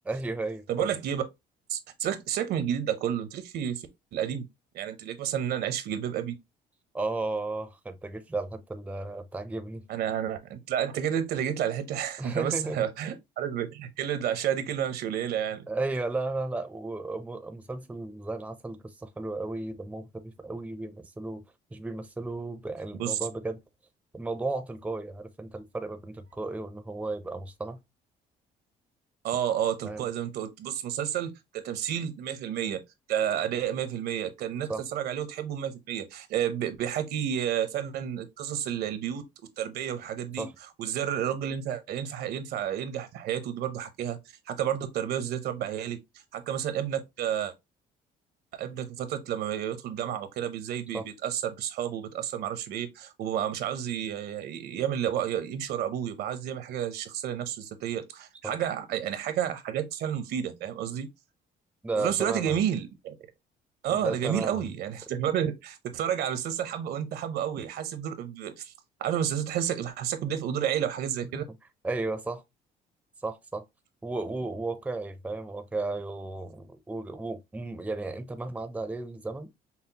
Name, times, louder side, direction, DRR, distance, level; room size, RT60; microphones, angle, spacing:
voice 1, 0.1-0.9 6.9-9.8 12.2-12.9 15.7-21.4 21.7-23.6 24.1-27.8 29.8-30.1 34.7-34.8 40.4-40.5 50.9-51.1 58.4-58.5 61.8-62.5 63.9-64.6 71.3-71.5 71.8-72.4 73.2-73.6 74.0-79.5, right 2 dB, 10° right, 0.5 m, -34 dB
voice 2, 0.7-1.2 1.7-4.4 4.7-6.3 9.9-15.7 23.0-23.2 29.2-32.8 33.1-39.2 39.6-40.5 40.8-44.2 44.5-46.0 46.3-47.5 48.5-61.1 62.0-63.1 63.8-68.7 69.0-71.4, right 9 dB, 70° right, 0.7 m, -31 dB
5.6 x 2.0 x 2.8 m
cardioid pair, 110°, 17 cm